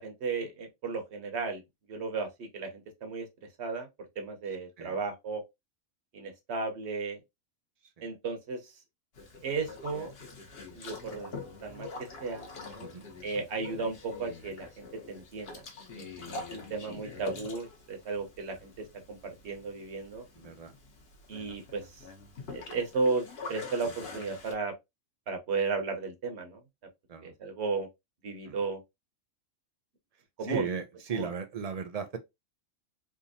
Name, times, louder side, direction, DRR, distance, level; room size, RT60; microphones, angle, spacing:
voice 1, 0.0-1.6 1.9-3.2 3.6-3.9 4.2-5.4 6.1-7.2 8.0-8.6 9.4-10.1 10.7-11.3 11.6-11.9 12.2-12.5 13.2-15.6 16.0-18.7 19.1-19.2 19.4-20.2 21.3-21.8 22.5-24.7 25.3-26.6 27.2-27.9 28.2-28.8 30.4-30.7 31.1-31.3, right 4 dB, 55° right, 1.2 m, -34 dB
voice 2, 4.5-5.0 8.0-8.1 12.8-13.1 20.4-20.7 27.1-27.3 28.5-28.6 30.4-32.2, right 6 dB, 75° right, 0.3 m, -37 dB
Boat Water vehicle, 9.2-24.5, left 3 dB, 50° left, 1.1 m, -45 dB
3.5 x 2.8 x 2.6 m
omnidirectional pair, 1.5 m